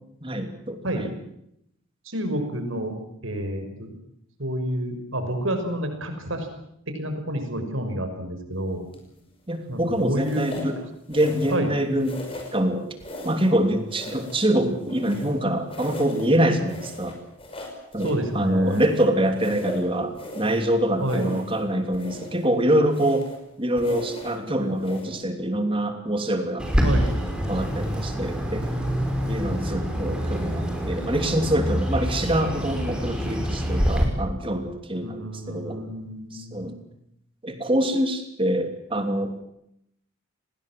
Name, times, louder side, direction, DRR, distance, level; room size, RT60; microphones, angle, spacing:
voice 1, 0.2-1.1 9.5-10.8 11.1-12.2 12.5-12.8 13.2-17.2 17.9-23.3 23.6-26.7 27.5-28.7 29.3-35.9 36.3-36.7 37.4-39.4, right 1 dB, 25° right, 7 dB, 3.1 m, -25 dB
voice 2, 2.0-2.9 3.2-3.9 4.4-6.5 6.9-8.8 9.7-10.7 11.5-11.7 18.0-18.8 21.0-21.3 26.8-27.2 29.3-30.3 34.9-36.9, right 1 dB, 75° right, 7 dB, 6.0 m, -29 dB
sound 1, 8.9-9.2 10.2-10.8 11.1-11.7 12.0-12.6 13.0-13.6 13.9-15.4 15.7-16.3 16.7-18.2 18.6-20.6 21.0-21.6 21.9-22.5 22.9-23.4 23.8-24.4 24.8-25.0, left 1 dB, 25° left, 5.7 m, -39 dB
Bird, 26.6-34.0, equal, 5° right, 5.5 m, -26 dB
30.0 x 20.5 x 7.7 m, 0.75 s
head